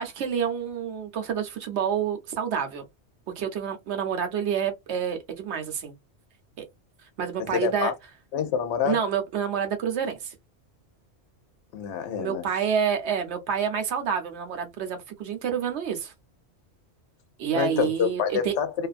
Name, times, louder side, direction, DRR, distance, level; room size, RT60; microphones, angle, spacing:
voice 1, 0.0-2.8 3.4-5.9 6.6-6.7 7.2-7.9 8.8-10.3 12.2-16.1 17.4-18.5, right 7 dB, 70° right, 0.9 m, -28 dB
voice 2, 7.5-7.9 8.3-9.0 11.7-12.4 17.5-18.9, left 7 dB, 75° left, 0.9 m, -27 dB
2.5 x 2.3 x 2.4 m
omnidirectional pair, 1.2 m